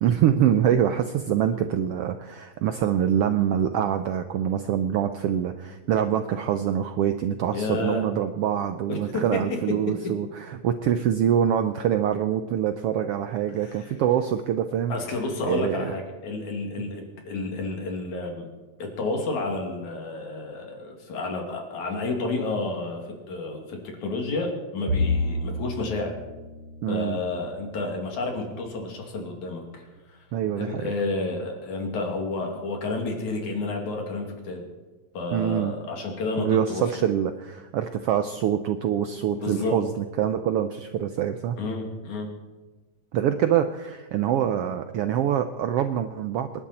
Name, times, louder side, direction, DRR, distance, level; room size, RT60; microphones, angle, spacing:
voice 1, 0.0-15.0 15.5-15.9 26.8-27.2 30.3-30.9 35.3-35.7 36.4-41.6 43.1-46.5, right 9 dB, 80° right, 8 dB, 1.3 m, -25 dB
voice 2, 7.5-8.0 8.9-9.6 13.6-13.7 14.9-18.5 18.8-26.1 26.9-30.2 30.6-34.6 35.1-36.8 39.4-39.8 41.6-42.3, left 3 dB, 75° left, 2 dB, 3.9 m, -30 dB
Bowed string instrument, 24.9-28.4, left 2 dB, 55° right, 6.8 m, -30 dB
27.5 x 11.0 x 4.3 m, 1.2 s
omnidirectional pair, 3.4 m